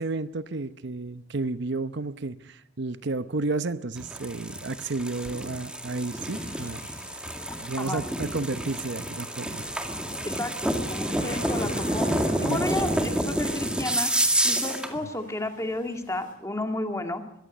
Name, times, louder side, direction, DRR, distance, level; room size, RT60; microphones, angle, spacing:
voice 1, 0.0-6.8 7.2-7.3 7.6-9.6 12.4-12.7, right 3 dB, 65° right, 12 dB, 0.9 m, -32 dB
sound 1, 4.0-14.9, right 1 dB, 5° right, 2.1 m, -29 dB
sound 2, 6.1-16.3, left 1 dB, 45° left, 6.3 m, -44 dB
voice 2, 10.2-12.1 12.4-17.2, left 1 dB, 15° left, 5 dB, 2.2 m, -32 dB
22.0 x 15.5 x 8.4 m, 0.79 s
head